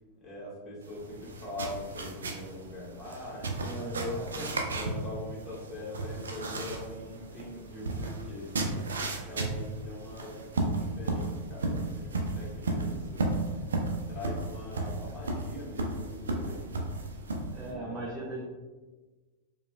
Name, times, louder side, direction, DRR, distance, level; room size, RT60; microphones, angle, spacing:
voice 1, 0.2-4.3 4.7-13.3 14.1-16.9 17.5-18.3, left 1 dB, 15° left, -7 dB, 1.5 m, -43 dB
sound 1, 0.8-17.7, right 2 dB, 70° right, 0.5 m, -34 dB
voice 2, 3.6-4.5 17.5-18.4, right 1 dB, 20° right, -4 dB, 0.6 m, -37 dB
4.7 x 2.3 x 2.3 m, 1.3 s
figure-of-eight pair, 90°, 0 cm